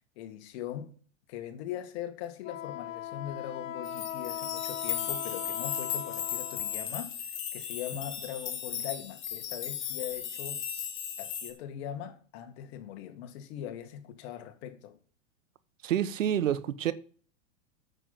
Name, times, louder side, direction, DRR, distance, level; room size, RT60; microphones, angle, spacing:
voice 1, 0.2-0.9 1.3-7.1 7.5-10.6 11.2-15.0, left 10 dB, 55° left, 2.1 m, -40 dB
Wind instrument woodwind instrument, 2.4-6.9, left 10 dB, 85° left, 0.9 m, -39 dB
sound 1, 3.8-11.5, left 9 dB, 30° left, 2.3 m, -36 dB
voice 2, 15.8-16.9, right 10 dB, 80° right, 1.1 m, -28 dB
9.1 x 6.9 x 7.4 m
hypercardioid pair, 115°, 38 cm